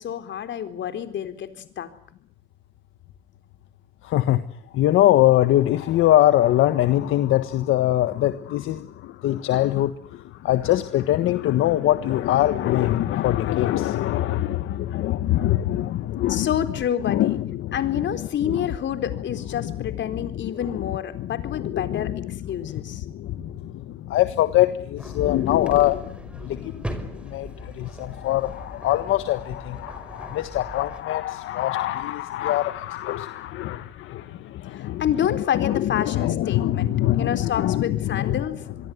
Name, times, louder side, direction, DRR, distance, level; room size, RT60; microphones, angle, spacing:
voice 1, 0.0-1.9 16.3-17.4 17.7-23.0 34.7-38.6, left 9 dB, 70° left, 10 dB, 4.1 m, -28 dB
voice 2, 4.0-16.5 17.0-18.7 19.5-38.4, left 14 dB, 85° left, 10 dB, 1.5 m, -23 dB
sound 1, 25.0-31.0, equal, 5° right, 5.7 m, -39 dB
26.5 x 23.0 x 9.6 m, 0.62 s
cardioid pair, 90°, 20 cm